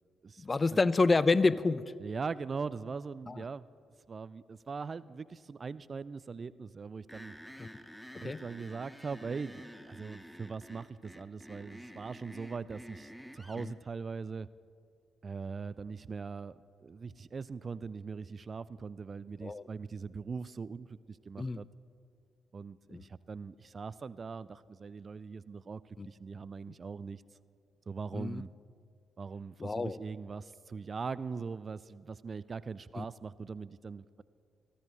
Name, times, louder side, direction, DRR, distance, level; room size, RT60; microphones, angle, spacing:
voice 1, 0.4-1.9 3.3-3.4 7.6-7.7 8.1-8.4 13.6-13.7 19.4-19.6 21.4-21.6 22.9-23.0 26.0-26.1 28.1-28.4 29.6-30.0 32.9-33.0, left 3 dB, 35° left, 18 dB, 0.5 m, -28 dB
voice 2, 2.0-3.6 4.1-7.3 8.2-14.5 15.2-16.6 16.8-21.7 22.5-27.2 27.9-28.5 29.2-34.2, right 5 dB, 45° right, 18 dB, 0.4 m, -41 dB
sound 1, 7.1-13.7, equal, 5° left, 1.0 m, -50 dB
24.0 x 14.0 x 3.1 m, 2.3 s
hypercardioid pair, 40°, 0 cm